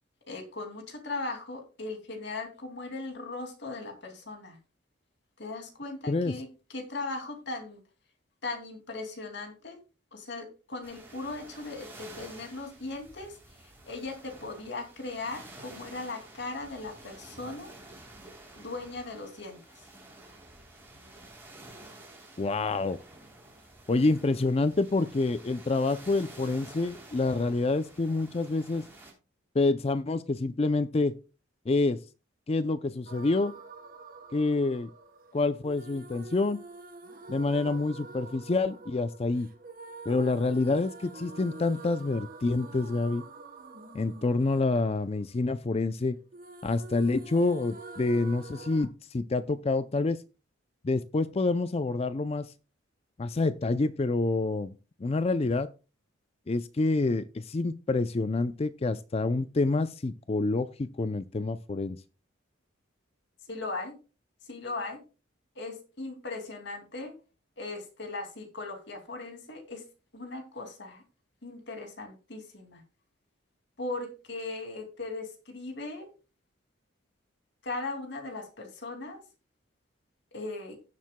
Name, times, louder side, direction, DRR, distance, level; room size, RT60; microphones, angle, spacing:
voice 1, 0.3-4.6 5.4-7.8 8.4-9.8 10.1-13.4 13.8-17.7 18.6-19.8 63.5-63.9 64.5-65.0 65.6-67.1 67.6-69.8 70.1-71.0 71.4-72.8 73.8-76.1 77.6-79.2 80.3-80.8, left 3 dB, 60° left, 2.6 m, -38 dB
sound 1, 10.8-29.1, right 2 dB, 10° right, 3.4 m, -50 dB
voice 2, 22.4-23.0 23.9-28.8 29.5-31.1 31.7-32.0 32.5-33.5 34.3-34.9 35.3-36.6 37.3-39.5 40.1-43.2 43.9-46.2 46.6-50.2 50.8-52.5 53.2-55.7 56.5-62.0, left 3 dB, 30° left, 0.4 m, -27 dB
sound 2, 33.1-46.0 46.3-48.9, right 3 dB, 45° right, 1.1 m, -47 dB
17.0 x 7.4 x 2.2 m
head